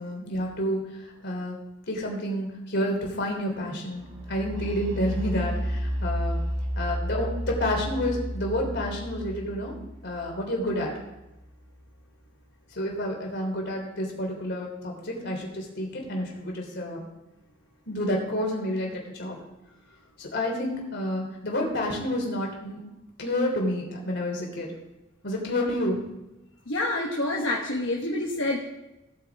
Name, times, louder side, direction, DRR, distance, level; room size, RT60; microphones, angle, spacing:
voice 1, 0.0-1.6 1.9-6.4 6.7-9.7 10.0-10.9 12.7-17.1 17.9-19.3 20.2-22.8 23.2-24.7 25.2-26.0, left 1 dB, 60° left, 0 dB, 3.3 m, -29 dB
sound 1, 4.0-11.7, equal, 65° right, 2.5 m, -32 dB
voice 2, 26.7-28.7, left 2 dB, 75° left, -1 dB, 1.3 m, -27 dB
17.5 x 8.6 x 3.5 m, 0.98 s
head